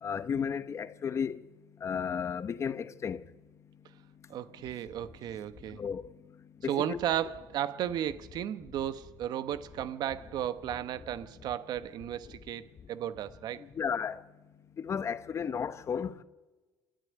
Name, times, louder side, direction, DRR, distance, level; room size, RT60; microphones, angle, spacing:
voice 1, 0.0-1.4 1.8-3.2 5.7-6.1 6.6-7.0 13.7-14.2 14.8-16.2, left 7 dB, 40° left, 0.9 m, -33 dB
voice 2, 4.3-5.8 6.7-13.6, right 11 dB, 65° right, 1.1 m, -34 dB
27.0 x 10.5 x 9.5 m
cardioid pair, 105°, 8 cm